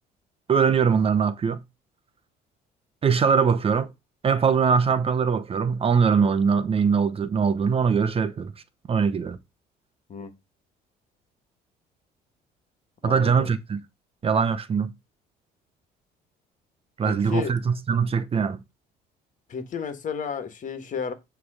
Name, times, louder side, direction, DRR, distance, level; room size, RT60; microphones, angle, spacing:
voice 1, 0.5-1.6 3.0-3.9 4.2-8.5 8.9-9.4 13.0-13.8 14.2-14.9 17.0-18.6, right 6 dB, 35° right, 0.8 m, -22 dB
voice 2, 13.0-13.5 17.0-17.5 19.5-21.1, left 7 dB, 50° left, 1.8 m, -32 dB
9.4 x 3.4 x 6.3 m
cardioid pair, 110°, 17 cm